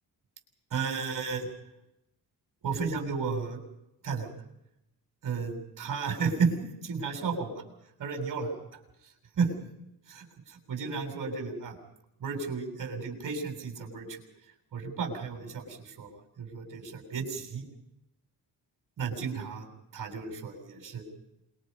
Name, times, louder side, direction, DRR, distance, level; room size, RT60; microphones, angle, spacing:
voice 1, 0.7-1.5 2.6-3.6 4.0-4.3 5.2-6.5 6.8-7.6 8.0-8.5 9.4-9.5 10.1-11.8 12.2-14.2 14.7-16.1 16.4-17.6 19.0-19.7 19.9-21.0, right 5 dB, 55° right, 2 dB, 7.4 m, -33 dB
28.0 x 23.5 x 5.5 m, 0.84 s
wide cardioid pair, 175°, 39 cm